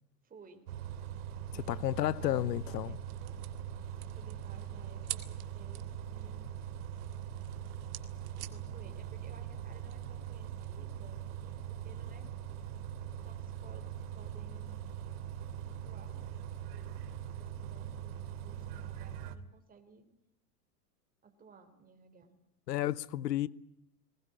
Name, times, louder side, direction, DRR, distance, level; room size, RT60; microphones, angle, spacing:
voice 1, 0.2-0.6 1.5-3.4 4.1-6.5 8.4-12.3 13.2-14.9 15.7-16.4 17.3-20.1 21.2-22.3, right 4 dB, 20° right, 3.7 m, -57 dB
Bus, 0.7-19.4, right 9 dB, 70° right, 2.6 m, -42 dB
voice 2, 1.7-3.0 22.7-23.5, left 13 dB, 85° left, 1.1 m, -32 dB
sound 1, 2.5-10.9, right 18 dB, 50° right, 2.0 m, -50 dB
21.0 x 19.5 x 9.7 m
hypercardioid pair, 120°, 47 cm